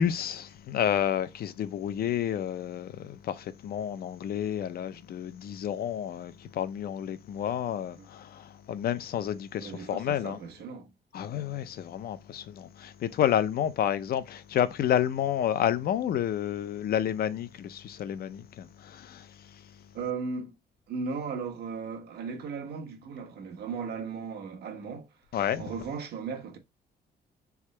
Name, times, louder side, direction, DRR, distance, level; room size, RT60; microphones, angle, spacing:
voice 1, 0.0-10.4 11.1-19.6 25.3-25.7, left 10 dB, 60° left, 0.5 m, -30 dB
voice 2, 9.6-10.9 19.9-20.5 20.9-25.1 25.6-26.6, right 5 dB, 65° right, 1.1 m, -36 dB
3.7 x 3.5 x 3.1 m
cardioid pair, 140°, 18 cm